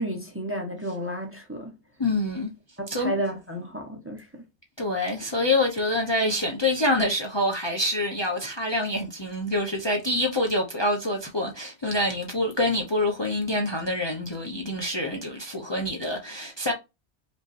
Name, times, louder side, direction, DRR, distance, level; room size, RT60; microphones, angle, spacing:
voice 1, 0.0-1.7 2.8-4.4, right 1 dB, 15° right, 0.9 m, -32 dB
voice 2, 2.0-2.5 2.9-3.1 4.8-16.7, left 1 dB, 25° left, 0.8 m, -26 dB
5.3 x 2.9 x 2.5 m
omnidirectional pair, 1.1 m